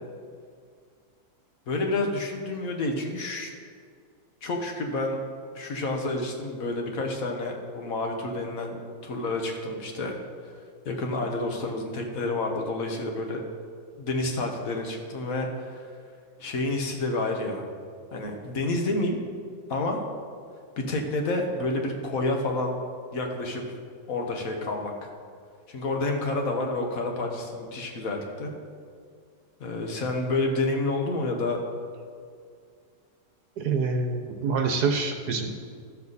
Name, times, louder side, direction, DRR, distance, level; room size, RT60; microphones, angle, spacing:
voice 1, 1.7-3.5 4.4-5.2 5.5-8.8 9.0-10.2 10.8-13.4 14.0-15.8 16.4-17.7 18.1-19.2 19.7-20.0 20.8-22.8 23.1-23.6 24.1-24.9 25.7-28.5 29.6-31.6, left 2 dB, 55° left, 2 dB, 1.6 m, -29 dB
voice 2, 33.6-35.5, right 4 dB, 70° right, 4 dB, 1.2 m, -26 dB
13.5 x 7.0 x 4.1 m, 2.1 s
omnidirectional pair, 1.9 m